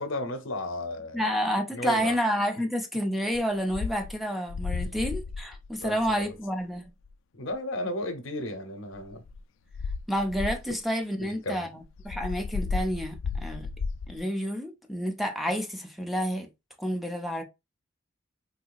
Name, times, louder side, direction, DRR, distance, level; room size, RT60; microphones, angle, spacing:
voice 1, 0.0-1.2 1.7-2.2 4.8-5.0 5.8-6.3 7.3-9.2 11.2-11.7, left 1 dB, 85° left, 0.8 m, -34 dB
voice 2, 1.1-6.9 10.1-13.7 14.1-16.5 16.8-17.4, equal, ahead, 0.5 m, -29 dB
sound 1, 3.3-3.4 3.7-4.1 4.5-6.3 7.0-7.1 8.9-9.4 9.7-10.8 11.8-14.2, left 4 dB, 70° left, 0.3 m, -33 dB
3.8 x 2.7 x 2.4 m
head